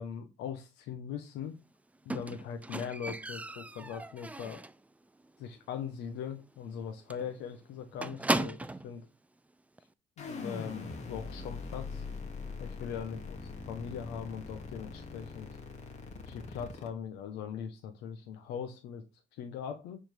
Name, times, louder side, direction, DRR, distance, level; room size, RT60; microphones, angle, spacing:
voice 1, 0.0-1.6 2.0-4.6 5.4-9.1 10.2-12.0 12.6-13.4 13.7-15.5 16.3-19.0 19.3-20.0, left 7 dB, 90° left, 1.2 m, -40 dB
Squeak, 2.1-4.9 5.2-5.6 5.9-6.0 6.3-6.4 6.7-6.8 7.1-8.9 9.8-9.9, right 2 dB, 10° right, 0.5 m, -36 dB
sound 1, 10.2-16.9, left 4 dB, 45° left, 2.5 m, -42 dB
9.3 x 4.4 x 5.2 m
cardioid pair, 110°, 17 cm